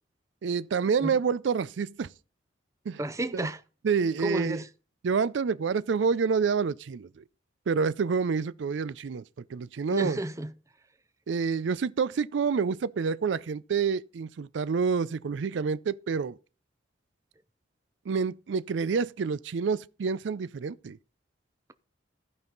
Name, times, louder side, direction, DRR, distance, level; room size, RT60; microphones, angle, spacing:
voice 1, 0.4-2.1 2.9-3.0 3.3-3.5 3.8-4.6 5.0-7.2 7.7-9.2 9.5-10.2 11.3-16.3 18.1-21.0, right 5 dB, 80° right, 0.4 m, -28 dB
voice 2, 3.0-3.6 4.2-4.7 9.9-10.5, right 1 dB, 15° right, 0.6 m, -31 dB
15.0 x 5.3 x 3.9 m
head